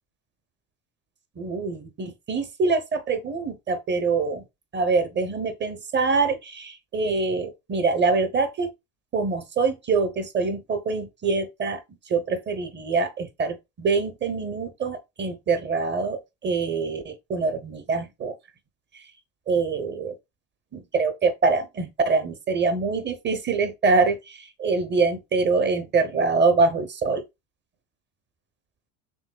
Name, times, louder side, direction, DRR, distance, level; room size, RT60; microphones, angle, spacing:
voice 1, 1.4-4.4 4.7-8.7 9.1-11.8 12.1-18.3 19.5-20.1 20.7-24.2 24.6-27.2, right 4 dB, 25° right, 0.7 m, -24 dB
5.3 x 3.1 x 2.2 m
supercardioid pair, 105°, 41 cm